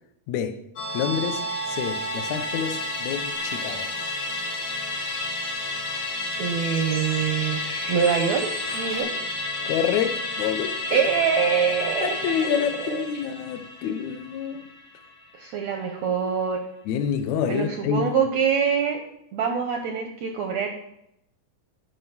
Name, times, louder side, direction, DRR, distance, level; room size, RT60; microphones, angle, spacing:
voice 1, 0.3-0.6 0.9-3.9 9.6-11.0 12.0-14.7 16.8-18.1, left 8 dB, 80° left, 1.6 m, -28 dB
Musical instrument, 0.8-15.4 15.8-15.9, left 2 dB, 50° left, 1.4 m, -31 dB
Bird, 3.3-9.0, right 2 dB, 60° right, 0.6 m, -41 dB
voice 2, 6.4-7.6 7.9-9.1 10.9-13.0 15.3-16.6 17.5-19.0 19.3-20.7, right 7 dB, 80° right, 1.6 m, -25 dB
9.6 x 5.3 x 5.9 m
omnidirectional pair, 4.2 m